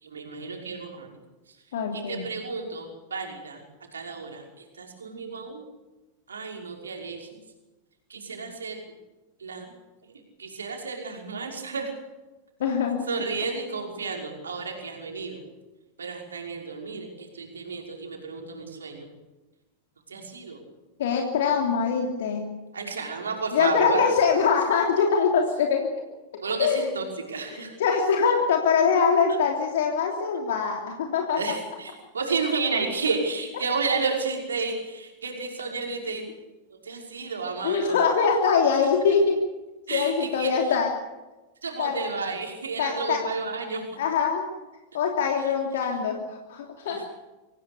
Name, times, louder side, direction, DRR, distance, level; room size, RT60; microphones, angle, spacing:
voice 1, 0.0-1.1 1.5-1.6 1.9-3.6 3.9-5.6 6.3-7.3 8.1-8.8 9.4-9.7 10.0-10.1 10.4-11.9 13.1-15.4 16.0-19.1 20.1-20.6 22.7-24.1 26.4-27.7 29.3-29.4 31.4-36.3 36.8-38.0 39.9-40.8 41.6-44.0 45.4-45.5 46.9-47.0, right 4 dB, 70° right, 1 dB, 5.7 m, -32 dB
voice 2, 1.7-2.2 12.6-13.0 21.0-22.5 23.5-25.9 26.6-26.9 27.5-31.4 37.6-39.4 39.9-40.9 41.8-42.0 42.8-43.2 44.0-44.5 44.9-47.1, left 6 dB, 60° left, 2 dB, 3.1 m, -23 dB
25.5 x 17.5 x 8.4 m, 1.1 s
figure-of-eight pair, 90°, 0 cm